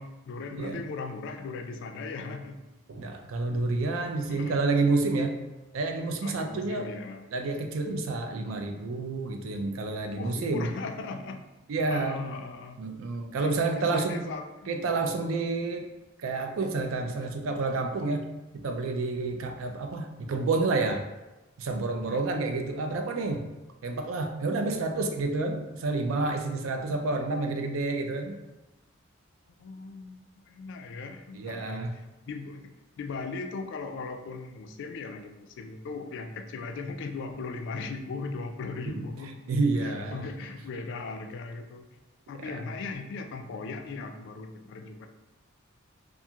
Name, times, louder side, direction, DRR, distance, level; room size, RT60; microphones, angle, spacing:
voice 1, 0.0-2.6 3.9-4.7 6.2-7.3 10.1-11.5 11.9-12.8 13.4-15.1 22.0-22.2 26.8-27.2 29.6-32.7 33.0-39.4 39.7-41.9 42.3-45.1, left 4 dB, 60° left, 6 dB, 0.3 m, -38 dB
voice 2, 2.9-5.4 5.7-6.9 7.3-10.7 11.7-12.2 12.8-14.2 14.7-15.9 16.2-21.0 21.6-23.5 23.8-28.4 31.3-31.9 39.5-40.2 42.5-42.6, right 3 dB, 75° right, 5 dB, 0.4 m, -29 dB
2.4 x 2.3 x 2.8 m, 1.1 s
head